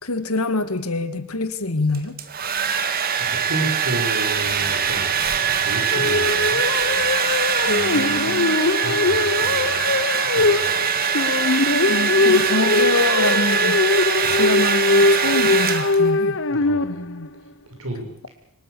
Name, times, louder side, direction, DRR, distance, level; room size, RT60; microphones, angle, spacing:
voice 1, 0.0-2.2 7.7-8.6 11.9-13.8 14.3-16.4 16.8-17.3, left 2 dB, 75° left, 11 dB, 1.9 m, -25 dB
Domestic sounds home sounds, 1.9-16.2, right 6 dB, 40° right, 1.8 m, -22 dB
voice 2, 3.1-6.6 7.7-8.4 8.8-10.8 14.2-14.4 16.5-17.0 17.8-18.1, right 1 dB, 70° right, 2 dB, 6.9 m, -32 dB
sound 1, 4.4-8.4, left 5 dB, 40° left, 2.0 m, -41 dB
sound 2, 5.9-17.3, left 3 dB, 55° left, 0.8 m, -21 dB
24.0 x 21.0 x 6.9 m, 0.78 s
head